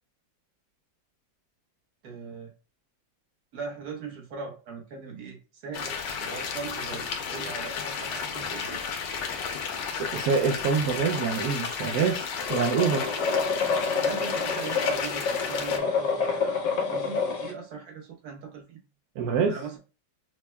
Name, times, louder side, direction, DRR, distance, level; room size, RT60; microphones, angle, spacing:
voice 1, 2.0-2.5 3.5-8.9 14.0-18.9 19.4-19.8, right 4 dB, 55° right, 0 dB, 1.3 m, -39 dB
sound 1, 5.7-15.8, left 6 dB, 75° left, 1.3 m, -33 dB
voice 2, 9.9-12.2 12.5-13.0 19.2-19.5, right 6 dB, 75° right, 2 dB, 0.9 m, -25 dB
sound 2, 12.4-17.5, left 5 dB, 60° left, 1.0 m, -28 dB
6.0 x 2.1 x 2.2 m, 0.34 s
omnidirectional pair, 2.1 m